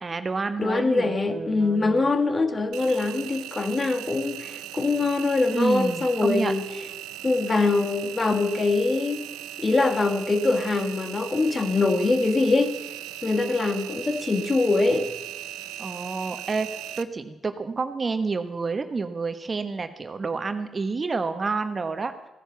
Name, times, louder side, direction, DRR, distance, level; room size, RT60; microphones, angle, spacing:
voice 1, 0.0-2.1 5.5-6.5 15.8-16.7 17.0-22.1, right 4 dB, 40° right, 1.2 m, -29 dB
voice 2, 0.6-6.6 7.2-9.3 9.6-12.9 13.2-15.1, left 3 dB, 35° left, 1.6 m, -23 dB
Engine, 2.7-17.0, right 13 dB, 85° right, 0.5 m, -38 dB
15.5 x 10.5 x 7.0 m
supercardioid pair, 50°, 0 cm